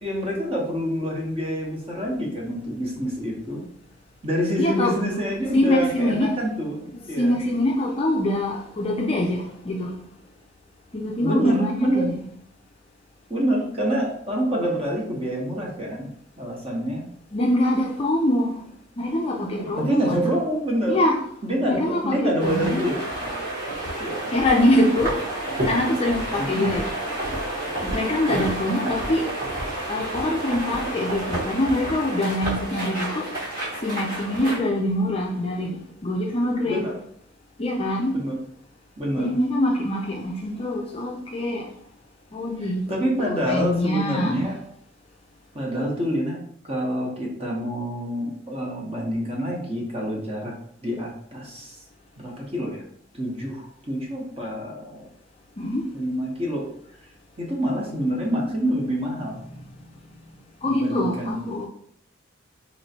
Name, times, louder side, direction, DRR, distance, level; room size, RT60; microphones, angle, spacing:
voice 1, 0.0-3.6 4.2-6.8 7.1-7.4 11.2-12.0 13.3-16.1 16.4-17.0 19.6-21.0 21.4-23.0 24.0-24.3 26.3-26.6 28.3-28.5 36.6-36.9 38.1-38.3 39.0-39.3 42.6-44.6 45.5-46.4 46.6-50.5 50.8-51.8 52.2-52.8 53.1-55.0 55.9-56.7 57.4-59.4 60.6-61.5, equal, 30° right, -2 dB, 1.0 m, -26 dB
voice 2, 4.6-4.9 5.5-6.3 6.9-10.0 10.9-12.3 17.3-18.6 19.0-20.2 20.9-21.2 21.6-22.9 24.3-25.2 25.6-26.9 27.8-29.3 29.9-33.3 33.8-36.8 37.6-38.2 39.2-41.7 42.3-42.9 43.4-44.5 55.6-55.9 59.5-59.6 60.6-61.7, left 1 dB, 30° left, -1 dB, 0.4 m, -24 dB
sound 1, 22.4-34.6, right 1 dB, 45° right, 1.5 m, -30 dB
4.3 x 3.0 x 2.8 m, 0.65 s
head